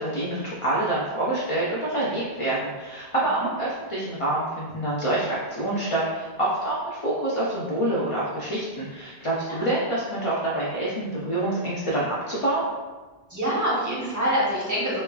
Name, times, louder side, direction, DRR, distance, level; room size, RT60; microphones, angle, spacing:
voice 1, 0.0-12.6, right 1 dB, 50° left, -6 dB, 0.4 m, -27 dB
voice 2, 13.3-15.0, equal, 20° right, -7 dB, 0.6 m, -25 dB
3.0 x 2.2 x 2.3 m, 1.3 s
omnidirectional pair, 1.1 m